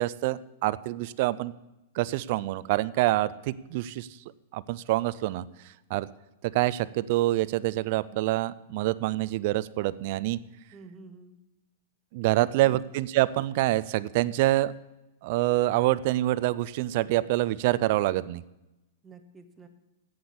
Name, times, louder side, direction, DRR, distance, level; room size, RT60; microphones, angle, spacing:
voice 1, 0.0-1.5 2.0-4.1 4.5-5.5 5.9-6.1 6.5-10.4 12.1-14.7 15.2-18.4, right 17 dB, 45° right, 18 dB, 0.4 m, -26 dB
voice 2, 10.7-11.4 12.3-12.7 19.0-19.7, right 4 dB, 10° right, 6 dB, 0.8 m, -47 dB
7.9 x 7.9 x 8.5 m, 0.97 s
supercardioid pair, 170°, 0 cm